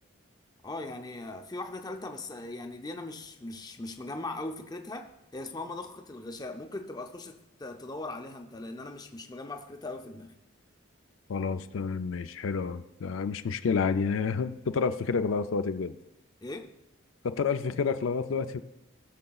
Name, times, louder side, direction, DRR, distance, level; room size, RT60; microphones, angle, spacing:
voice 1, 0.6-10.4 16.4-16.7, left 2 dB, 20° left, 5 dB, 0.5 m, -39 dB
voice 2, 11.3-15.9 17.2-18.6, left 5 dB, 75° left, 9 dB, 0.4 m, -29 dB
18.5 x 6.6 x 2.4 m, 0.91 s
head